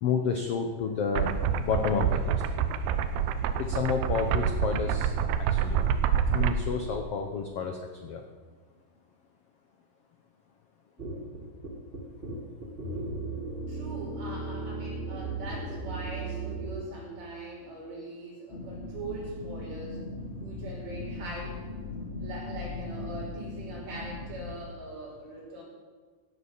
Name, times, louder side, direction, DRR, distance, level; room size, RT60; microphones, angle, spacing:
voice 1, 0.0-2.4 3.6-5.9 6.3-8.2, left 6 dB, 75° left, 5 dB, 1.4 m, -30 dB
sound 1, 1.2-6.6, right 8 dB, 80° right, 2.6 m, -27 dB
sound 2, 11.0-16.9, right 3 dB, 25° right, 1.2 m, -36 dB
voice 2, 13.7-20.0 20.4-21.6 22.2-25.6, right 2 dB, 65° right, -4 dB, 6.7 m, -41 dB
sound 3, 18.5-24.6, left 2 dB, 30° left, 1.3 m, -39 dB
16.5 x 9.9 x 7.3 m, 1.5 s
omnidirectional pair, 4.1 m